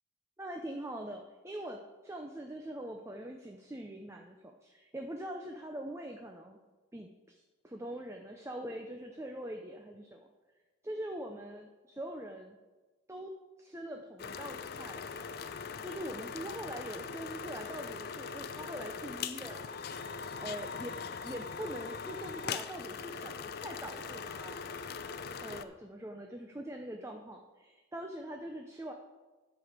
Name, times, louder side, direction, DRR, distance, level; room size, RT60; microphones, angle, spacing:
voice 1, 0.4-6.6 6.9-10.3 10.8-12.6 13.1-13.3 13.6-15.0 15.8-19.7 20.4-21.0 21.2-24.6 25.4-28.9, right 1 dB, 15° right, 3 dB, 0.5 m, -43 dB
sound 1, 14.2-25.6, left 6 dB, 50° left, 0.4 m, -41 dB
11.0 x 5.0 x 6.6 m, 1.2 s
head